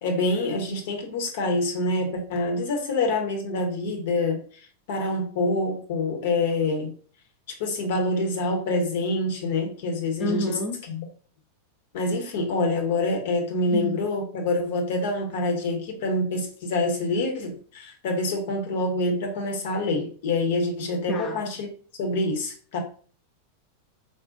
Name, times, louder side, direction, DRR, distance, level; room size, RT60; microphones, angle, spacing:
voice 1, 0.0-6.9 7.6-10.6 10.9-11.1 11.9-21.7 22.0-22.8, left 2 dB, 55° left, 0.8 m, -26 dB
voice 2, 10.2-10.8 13.7-14.0 21.1-21.4, left 1 dB, 25° left, 0.4 m, -29 dB
3.8 x 2.0 x 2.5 m
figure-of-eight pair, 90°, 0 cm